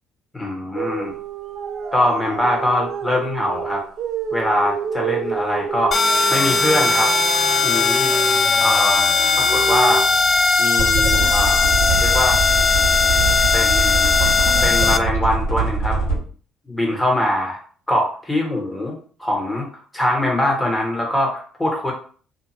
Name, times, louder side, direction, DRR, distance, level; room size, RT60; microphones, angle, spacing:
voice 1, 0.3-1.1 1.9-3.8 4.3-5.9 6.3-7.1 7.6-8.1 8.6-9.1 9.3-10.1 10.6-11.7 12.0-12.4 13.5-14.1 14.6-16.1 16.7-17.6 17.9-19.7 19.9-21.9, left 1 dB, 15° left, -1 dB, 1.3 m, -22 dB
sound 1, 0.7-10.0, right 6 dB, 60° right, 0.4 m, -28 dB
sound 2, 5.9-15.0, left 4 dB, 45° left, 0.3 m, -18 dB
sound 3, 10.8-16.2, right 4 dB, 90° left, 1.2 m, -23 dB
2.7 x 2.4 x 2.8 m, 0.43 s
hypercardioid pair, 55°, 0 cm